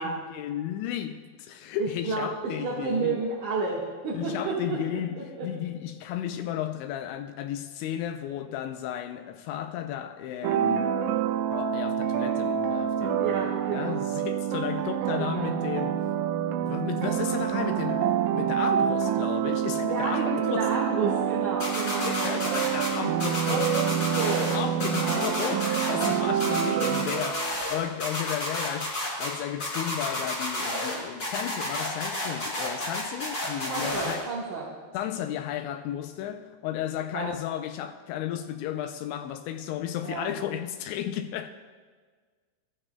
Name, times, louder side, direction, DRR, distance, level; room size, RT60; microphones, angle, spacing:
voice 1, 0.0-3.2 4.1-11.0 11.5-16.0 16.4-20.7 22.0-23.6 24.5-34.3 34.9-41.5, left 11 dB, 85° left, 2.6 m, -34 dB
voice 2, 1.8-5.5 13.2-14.0 15.2-15.5 19.8-22.6 23.4-25.5 33.7-34.7 37.1-37.3 40.0-40.4, right 4 dB, 65° right, 2.1 m, -31 dB
sound 1, 10.4-27.7, right 9 dB, 85° right, 2.7 m, -27 dB
sound 2, 21.6-22.9 23.2-24.5 24.8-26.1 26.4-27.7 28.0-29.3 29.6-30.9 31.2-34.1, left 1 dB, 25° left, 3.7 m, -31 dB
20.5 x 13.5 x 2.2 m
omnidirectional pair, 5.6 m